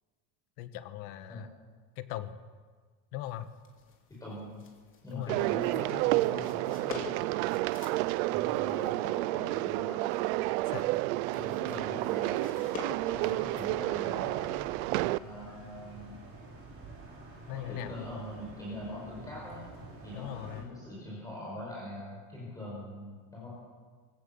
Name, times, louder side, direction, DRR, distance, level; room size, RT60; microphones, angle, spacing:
voice 1, 0.6-1.5 2.0-2.4 3.1-3.5 5.1-5.4 10.6-10.9 17.5-18.0 20.1-20.8, left 13 dB, 55° left, 10 dB, 1.3 m, -39 dB
sound 1, 3.2-13.7, left 5 dB, 30° left, 2.9 m, -49 dB
voice 2, 4.1-4.6 5.0-7.3 8.3-10.0 11.3-12.5 13.0-14.6 15.2-16.2 17.5-19.7 20.0-23.5, left 1 dB, 10° left, -6 dB, 5.7 m, -43 dB
sound 2, 5.3-15.2, right 19 dB, 70° right, 0.6 m, -30 dB
sound 3, 13.0-20.6, right 3 dB, 30° right, 5.4 m, -49 dB
24.0 x 16.5 x 7.2 m, 1.5 s
cardioid pair, 180°, 43 cm